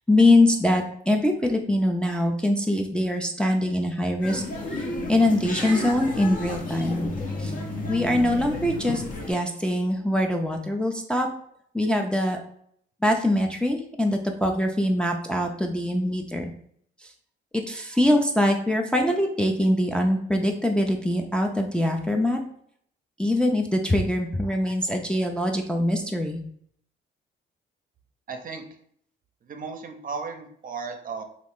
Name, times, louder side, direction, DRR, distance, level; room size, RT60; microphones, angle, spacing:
voice 1, 0.1-4.4 4.8-7.1 7.4-7.5 7.9-9.0 9.3-11.3 11.7-12.4 13.0-16.5 17.0-17.1 17.5-22.4 23.2-26.4, left 1 dB, 5° left, 2 dB, 0.4 m, -23 dB
sound 1, 4.2-9.3, left 2 dB, 45° left, 0.8 m, -32 dB
voice 2, 28.3-28.6 29.5-31.2, right 5 dB, 45° right, 5 dB, 0.6 m, -35 dB
3.0 x 2.4 x 3.5 m, 0.65 s
cardioid pair, 90°, 20 cm